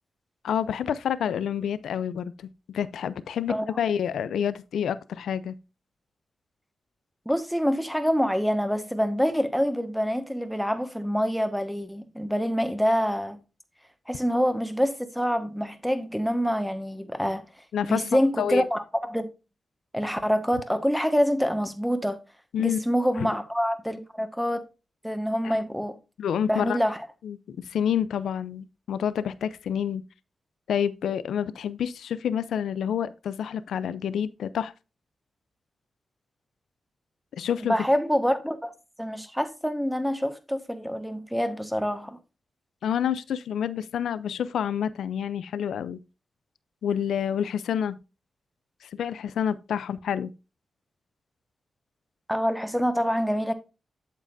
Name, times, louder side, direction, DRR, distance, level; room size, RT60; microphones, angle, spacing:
voice 1, 0.4-5.5 17.7-18.7 22.5-22.8 23.2-23.3 25.4-25.5 26.2-26.8 27.2-30.0 30.7-34.7 37.4-37.8 42.8-46.0 46.8-48.0 48.8-50.3, left 8 dB, 90° left, 0.4 m, -28 dB
voice 2, 7.2-13.4 14.1-17.5 17.8-19.3 19.9-22.2 22.6-24.7 25.0-26.0 26.5-27.1 37.7-42.2 52.3-53.5, equal, ahead, 1.4 m, -26 dB
8.4 x 7.4 x 2.6 m
cardioid pair, 60°, 0 cm